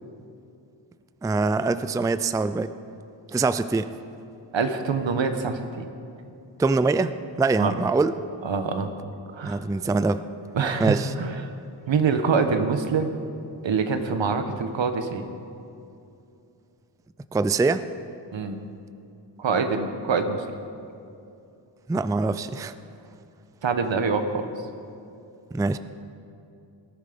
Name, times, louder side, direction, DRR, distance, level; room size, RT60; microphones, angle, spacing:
voice 1, 1.2-2.7 3.3-3.9 6.6-8.1 9.4-10.2 10.8-11.1 17.3-17.8 21.9-22.7 25.5-25.8, right 3 dB, 10° right, 12 dB, 0.3 m, -23 dB
voice 2, 4.5-5.9 7.6-7.8 8.4-8.9 9.3-9.6 10.5-11.4 11.9-13.2 13.6-15.2 18.3-18.6 19.4-20.4 23.6-24.5, right 5 dB, 80° right, 7 dB, 1.3 m, -25 dB
19.5 x 13.0 x 5.2 m, 2.6 s
wide cardioid pair, 115°, 45 cm